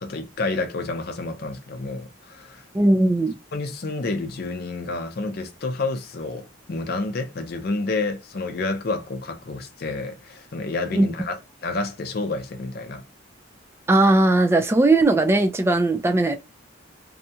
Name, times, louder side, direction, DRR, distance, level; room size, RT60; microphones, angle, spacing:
voice 1, 0.0-2.6 3.5-13.0, left 3 dB, 50° left, 0.5 m, -29 dB
voice 2, 2.7-3.4 10.9-11.1 13.9-16.4, right 2 dB, 15° right, 0.3 m, -18 dB
2.7 x 2.2 x 2.7 m
head